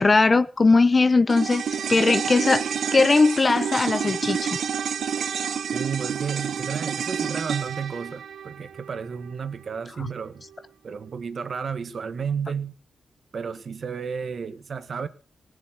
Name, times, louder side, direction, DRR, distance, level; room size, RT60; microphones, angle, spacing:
voice 1, 0.0-1.6 1.9-2.7 2.9-4.6, left 3 dB, 35° left, 1.0 m, -19 dB
sound 1, 1.3-9.8 10.1-10.2, right 7 dB, 75° right, 1.1 m, -29 dB
voice 2, 5.7-10.4 10.8-12.7 13.3-15.1, right 6 dB, 55° right, 1.5 m, -32 dB
19.5 x 7.5 x 8.0 m
cardioid pair, 90°, 0 cm